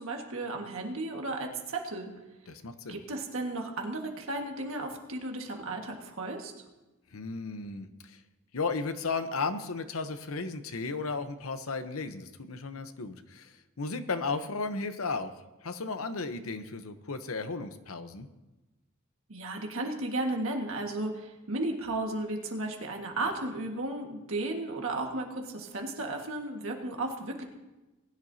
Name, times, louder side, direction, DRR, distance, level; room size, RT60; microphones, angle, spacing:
voice 1, 0.0-2.1 2.9-6.5 19.3-27.4, right 2 dB, 65° right, 2 dB, 1.7 m, -34 dB
voice 2, 2.5-3.0 7.1-8.2 8.5-15.3 15.6-18.3, left 4 dB, 80° left, 9 dB, 0.9 m, -35 dB
20.5 x 10.5 x 2.8 m, 1.1 s
head